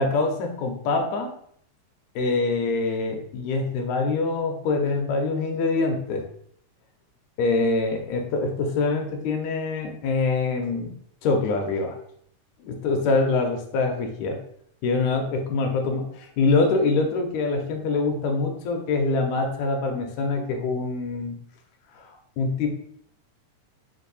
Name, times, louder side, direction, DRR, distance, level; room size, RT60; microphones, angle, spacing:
voice 1, 0.0-1.4 2.2-6.2 7.4-10.9 11.2-12.0 12.6-14.4 14.8-21.4 22.0-22.1 22.4-22.7, left 3 dB, 80° left, 3 dB, 2.0 m, -24 dB
4.7 x 2.7 x 4.0 m, 0.66 s
omnidirectional pair, 3.4 m